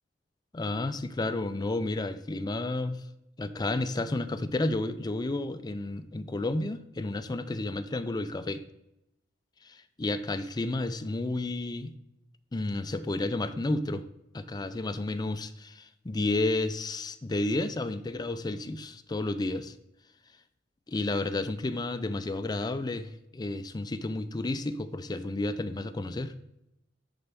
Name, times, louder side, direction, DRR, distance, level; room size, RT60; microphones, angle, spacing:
voice 1, 0.5-3.0 3.4-8.6 9.6-11.9 12.5-14.0 14.3-19.7 20.9-26.3, left 2 dB, 20° left, 10 dB, 0.4 m, -31 dB
10.5 x 4.4 x 3.5 m, 0.85 s
head